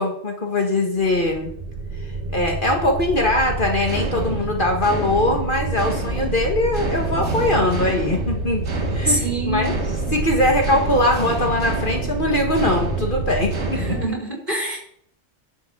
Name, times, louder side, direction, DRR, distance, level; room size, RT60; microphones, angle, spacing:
voice 1, 0.0-1.5 2.3-8.7 8.9-9.7 10.1-13.8 14.6-14.8, left 1 dB, 45° left, 2 dB, 1.8 m, -21 dB
sound 1, 1.0-14.1, right 3 dB, 70° right, 1.9 m, -26 dB
voice 2, 9.1-9.7 13.7-14.8, right 1 dB, 40° right, -3 dB, 4.6 m, -25 dB
11.0 x 5.8 x 7.1 m, 0.64 s
omnidirectional pair, 1.2 m